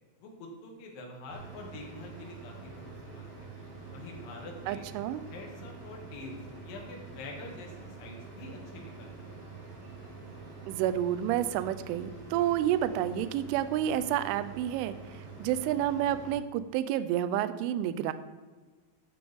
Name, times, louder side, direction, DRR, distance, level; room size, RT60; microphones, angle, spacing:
voice 1, 0.2-3.5 3.9-4.9 5.3-6.4 6.6-9.4, left 2 dB, 55° left, 0 dB, 2.9 m, -46 dB
sound 1, 1.3-16.3, right 4 dB, 45° right, 3.9 m, -46 dB
voice 2, 4.7-5.2 10.7-18.1, right 11 dB, 80° right, 12 dB, 3.0 m, -30 dB
14.0 x 7.8 x 3.6 m, 1.3 s
omnidirectional pair, 5.8 m